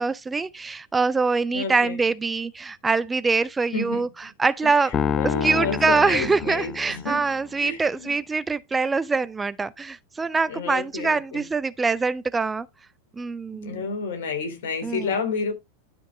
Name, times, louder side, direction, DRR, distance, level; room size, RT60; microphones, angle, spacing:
voice 1, 0.0-4.9 5.2-12.7 13.2-13.8 14.8-15.1, right 4 dB, 10° right, 0.5 m, -24 dB
voice 2, 1.5-2.0 3.7-4.1 4.6-4.7 5.2-7.2 7.6-8.1 10.5-11.4 13.6-15.5, left 5 dB, 60° left, 3.0 m, -30 dB
Piano, 4.9-7.4, left 8 dB, 25° left, 0.7 m, -28 dB
12.0 x 5.3 x 3.8 m
figure-of-eight pair, 90°, 0 cm